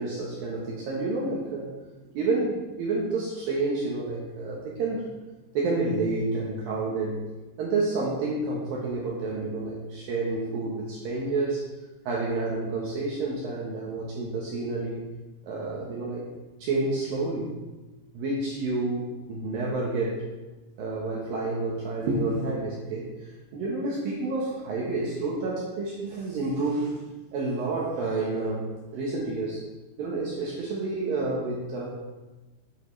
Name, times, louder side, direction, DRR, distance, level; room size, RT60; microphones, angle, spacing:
voice 1, 0.0-1.7 2.1-5.1 5.5-7.2 7.6-11.6 12.1-15.0 15.4-16.2 16.6-17.5 18.1-20.3 20.8-23.1 23.5-27.0 27.3-28.6 28.9-29.6 30.0-31.9, right 3 dB, 70° right, -4 dB, 2.3 m, -29 dB
9.0 x 7.8 x 3.2 m, 1.1 s
omnidirectional pair, 5.3 m